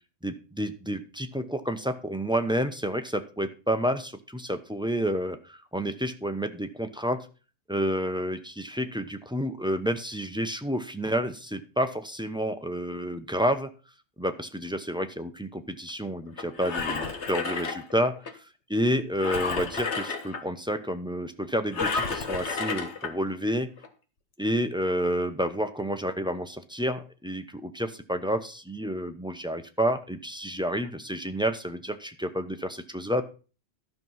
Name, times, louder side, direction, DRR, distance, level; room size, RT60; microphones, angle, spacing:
voice 1, 0.2-7.2 7.7-13.7 14.2-18.1 18.7-23.7 24.4-33.2, equal, 5° right, 8 dB, 0.8 m, -29 dB
Engine, 16.4-18.3 19.2-20.4 21.7-23.1 23.8-23.9, left 4 dB, 80° left, 1.7 m, -31 dB
12.0 x 6.2 x 5.5 m, 0.34 s
omnidirectional pair, 1.1 m